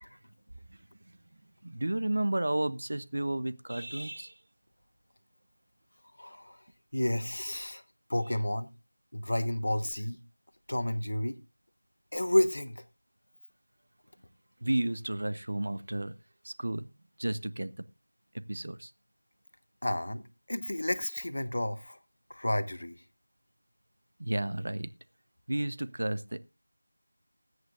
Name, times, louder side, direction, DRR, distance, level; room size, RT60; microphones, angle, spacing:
voice 1, 1.6-4.3 14.6-16.1 16.4-16.9 17.2-17.7 18.5-18.9 24.2-24.9 25.5-26.4, right 1 dB, 60° right, 0.9 m, -32 dB
voice 2, 6.2-6.6 6.9-7.8 8.1-8.7 9.1-10.2 10.7-11.4 12.1-12.8 19.8-22.0 22.3-23.0, left 1 dB, 70° left, 1.2 m, -31 dB
20.5 x 8.0 x 2.5 m
figure-of-eight pair, 175°, 0 cm